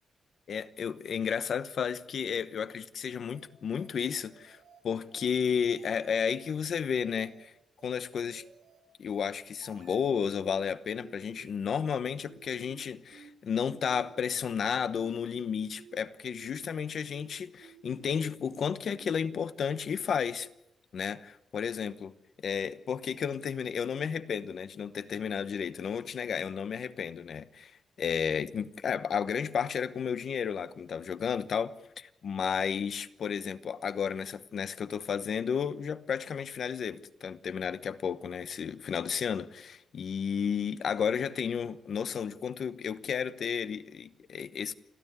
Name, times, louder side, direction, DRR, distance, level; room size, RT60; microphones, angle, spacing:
voice 1, 0.5-4.6 4.8-7.5 7.8-8.4 9.0-20.5 20.9-22.1 22.4-27.7 28.0-44.7, left 7 dB, 60° left, 1.0 m, -32 dB
sound 1, 3.3-3.5 3.8-4.0 4.3-4.8 5.1-5.3 5.6-6.1 6.4-6.6 6.9-7.5 7.8-8.0 8.3-8.8 9.1-9.3 9.6-10.1 10.4-10.6 10.9-11.5 11.8-12.0 12.3-12.8 13.1-13.3 13.6-14.1 14.4-14.6 14.9-15.5 15.8-16.0 16.3-16.8 17.1-17.3 17.6-18.1 18.4-18.6 18.9-19.3, right 7 dB, 75° right, 4.4 m, -55 dB
29.5 x 12.5 x 9.6 m
cardioid pair, 130°, 0 cm